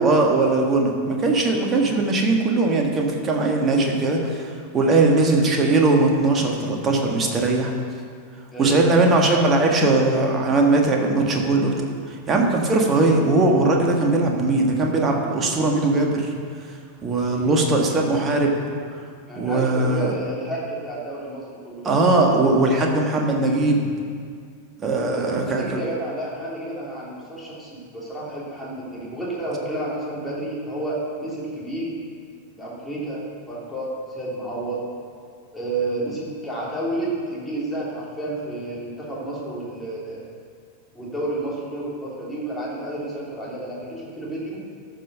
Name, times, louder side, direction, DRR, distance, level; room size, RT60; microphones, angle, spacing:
voice 1, 0.0-7.7 8.6-11.7 12.1-16.3 17.0-18.6 19.4-20.1 21.8-23.9 24.8-25.6, right 2 dB, 25° right, 1 dB, 1.6 m, -20 dB
voice 2, 17.3-17.6 19.3-22.0 25.2-32.0 32.6-34.8 35.5-40.3 40.9-44.6, right 1 dB, 5° left, -7 dB, 3.1 m, -31 dB
13.5 x 5.7 x 5.6 m, 2.1 s
figure-of-eight pair, 90°, 0 cm